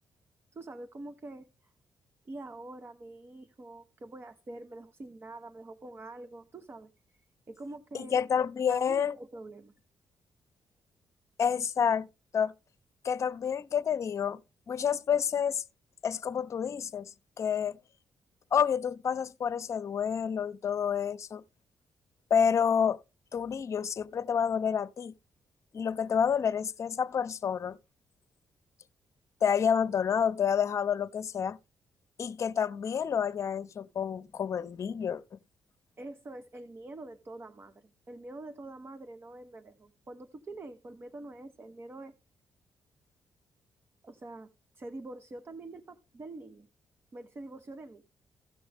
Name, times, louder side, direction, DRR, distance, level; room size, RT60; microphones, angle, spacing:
voice 1, 0.5-1.5 2.2-6.9 7.5-8.2 8.7-9.7 36.0-37.7 38.1-42.1 44.0-44.5 44.7-46.7 47.1-48.1, right 2 dB, 40° right, 1.0 m, -45 dB
voice 2, 7.9-9.1 11.4-12.1 12.3-12.5 13.0-14.4 14.7-15.6 16.0-17.8 18.5-21.4 22.3-23.0 23.3-25.1 25.7-27.8 29.4-31.6 32.2-35.2, left 7 dB, 50° left, 0.7 m, -29 dB
16.0 x 6.2 x 3.4 m
cardioid pair, 75°, 6 cm